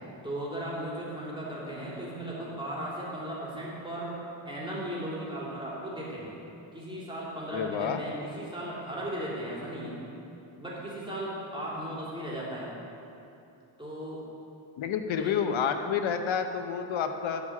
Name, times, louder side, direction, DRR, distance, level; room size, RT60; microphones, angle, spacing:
voice 1, 0.2-4.2 4.4-6.3 6.7-10.0 10.6-12.7 13.8-14.2 15.2-15.4, right 1 dB, 10° right, -6 dB, 2.9 m, -36 dB
voice 2, 7.5-8.0 14.8-17.4, left 7 dB, 85° left, 7 dB, 0.8 m, -29 dB
13.5 x 4.9 x 8.5 m, 2.8 s
wide cardioid pair, 150°, 45 cm